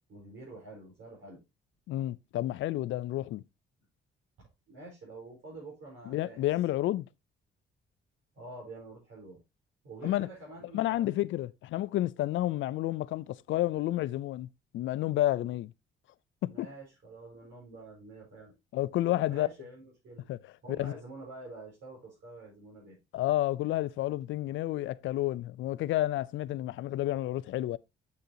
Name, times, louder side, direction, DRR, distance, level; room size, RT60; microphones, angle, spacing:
voice 1, 0.1-1.4 4.7-6.4 8.3-9.4 9.8-11.1 16.4-18.5 19.3-20.3 20.6-23.0, right 2 dB, 75° right, 4.8 m, -47 dB
voice 2, 1.9-3.4 6.1-7.0 10.0-10.3 10.7-14.5 14.7-15.7 16.4-16.7 18.7-19.5 20.3-20.4 20.8-21.0 23.1-27.8, left 15 dB, 75° left, 0.5 m, -30 dB
8.3 x 6.5 x 2.8 m
cardioid pair, 90°, 20 cm